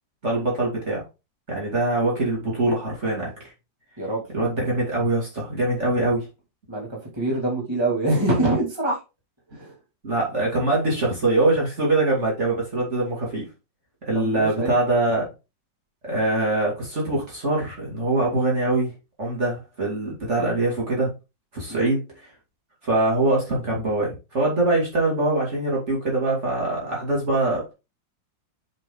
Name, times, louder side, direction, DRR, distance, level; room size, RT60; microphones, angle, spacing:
voice 1, 0.2-1.0 1.5-3.5 4.3-6.3 10.0-13.5 14.0-15.2 16.0-18.9 19.2-21.1 21.5-22.0 22.8-27.7, right 2 dB, 40° right, -3 dB, 2.7 m, -23 dB
voice 2, 6.7-9.0 9.5-9.8 14.1-14.7 21.7-21.9, right 2 dB, 15° right, -2 dB, 2.5 m, -25 dB
7.4 x 4.6 x 3.8 m, 0.27 s
omnidirectional pair, 2.0 m